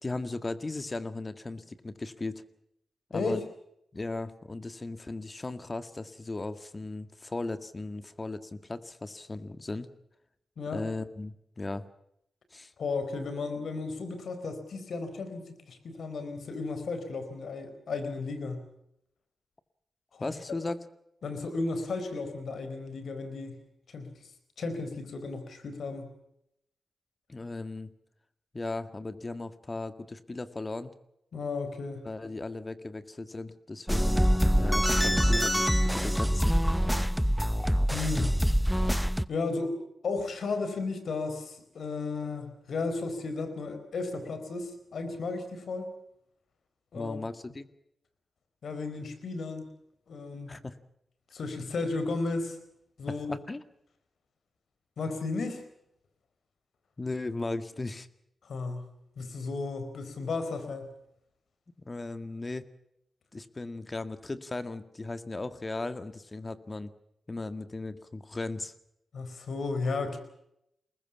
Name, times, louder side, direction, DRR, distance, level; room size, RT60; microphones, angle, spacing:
voice 1, 0.0-2.4 3.1-3.4 3.9-9.9 10.7-11.8 12.5-12.7 20.2-20.8 27.3-27.9 28.5-30.9 32.0-36.6 46.9-47.7 50.5-50.8 53.3-53.6 57.0-58.1 61.8-62.7 63.3-66.9 67.3-68.7, left 2 dB, 35° left, 10 dB, 1.9 m, -37 dB
voice 2, 3.1-3.4 10.6-10.8 12.8-18.7 20.1-20.3 21.2-23.6 23.9-24.1 24.6-26.1 31.3-32.1 37.9-38.4 39.3-39.7 40.0-45.9 46.9-47.2 48.6-49.7 50.1-50.6 51.3-52.6 53.0-53.4 55.0-55.6 58.4-58.9 59.2-60.9 69.1-70.2, left 3 dB, 75° left, 9 dB, 4.4 m, -34 dB
sound 1, 33.9-39.2, equal, ahead, 0.9 m, -25 dB
24.0 x 20.0 x 7.2 m, 0.77 s
cardioid pair, 45°, 0 cm